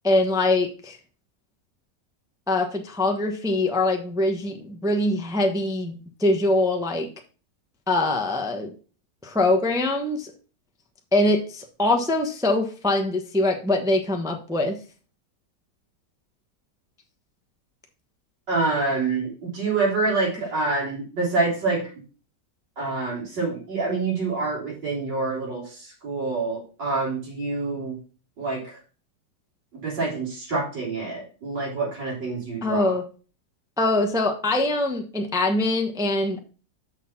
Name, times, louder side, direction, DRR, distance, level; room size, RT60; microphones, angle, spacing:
voice 1, 0.0-1.0 2.5-7.1 7.9-8.7 9.2-10.3 11.1-14.8 32.6-33.0 33.8-36.4, left 2 dB, 5° right, 3 dB, 0.8 m, -23 dB
voice 2, 18.5-21.9 22.8-28.0 28.4-28.8 29.7-33.0, right 3 dB, 75° right, -8 dB, 4.5 m, -27 dB
6.5 x 6.3 x 5.9 m, 0.37 s
omnidirectional pair, 1.9 m